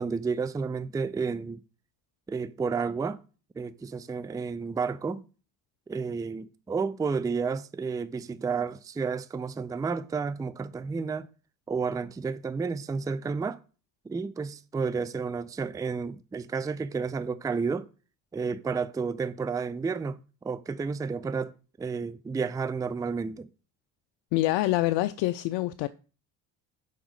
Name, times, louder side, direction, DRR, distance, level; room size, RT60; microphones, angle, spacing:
voice 1, 0.0-1.6 2.3-3.2 3.6-5.2 5.9-11.3 11.7-13.6 14.0-17.9 18.3-20.2 20.4-21.5 21.8-23.5, right 5 dB, 10° right, 0.4 m, -31 dB
voice 2, 24.3-25.9, left 17 dB, 60° left, 0.6 m, -26 dB
6.3 x 5.1 x 4.8 m
hypercardioid pair, 55°, 49 cm